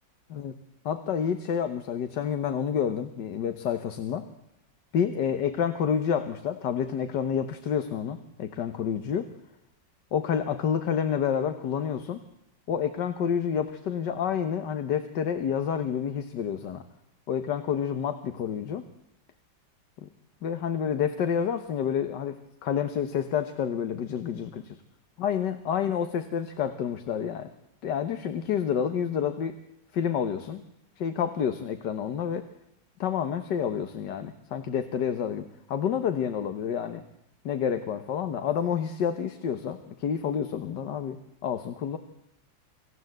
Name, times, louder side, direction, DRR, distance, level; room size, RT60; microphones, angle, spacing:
voice 1, 0.9-4.3 4.9-9.3 10.1-12.2 12.7-16.8 17.3-18.8 20.0-20.1 20.4-24.7 25.2-27.5 27.8-29.6 29.9-30.6 31.0-32.5 33.0-37.0 37.5-42.0, left 8 dB, 70° left, 9 dB, 1.7 m, -29 dB
26.0 x 15.0 x 7.9 m, 0.81 s
omnidirectional pair, 2.0 m